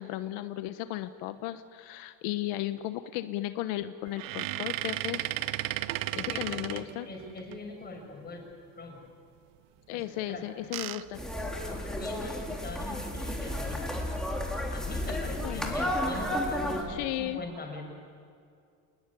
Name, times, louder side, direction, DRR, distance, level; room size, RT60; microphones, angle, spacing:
voice 1, 0.0-5.3 6.1-7.1 9.9-11.2 15.4-15.7 16.9-17.4, left 14 dB, 90° left, 10 dB, 1.1 m, -35 dB
sound 1, 4.1-7.6 10.3-12.2 12.7-12.8 13.1-13.2 14.8-15.1 15.7-16.2, right 15 dB, 60° right, 0.9 m, -35 dB
voice 2, 6.1-8.4 8.7-9.0 9.9-10.0 10.3-10.5 11.6-14.1 14.7-18.0, left 3 dB, 25° left, 1 dB, 7.3 m, -41 dB
sound 2, 11.1-16.8, left 1 dB, ahead, 3.6 m, -32 dB
28.5 x 20.0 x 9.9 m, 2.3 s
cardioid pair, 135°, 39 cm